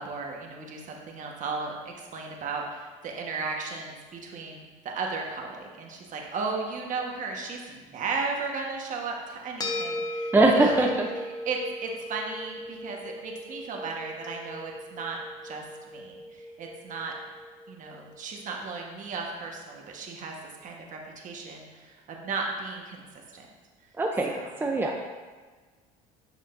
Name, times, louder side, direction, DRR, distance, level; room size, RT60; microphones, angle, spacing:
voice 1, 0.0-10.9 11.1-15.2 15.4-17.1 17.7-23.0 23.3-23.5 24.3-24.5, right 4 dB, 50° right, 0 dB, 1.3 m, -35 dB
sound 1, 9.6-18.2, left 1 dB, 20° left, 0.9 m, -38 dB
voice 2, 10.3-11.1 24.0-24.3 24.6-25.0, right 2 dB, 10° right, 1 dB, 0.6 m, -21 dB
10.5 x 5.1 x 2.6 m, 1.4 s
supercardioid pair, 105°, 17 cm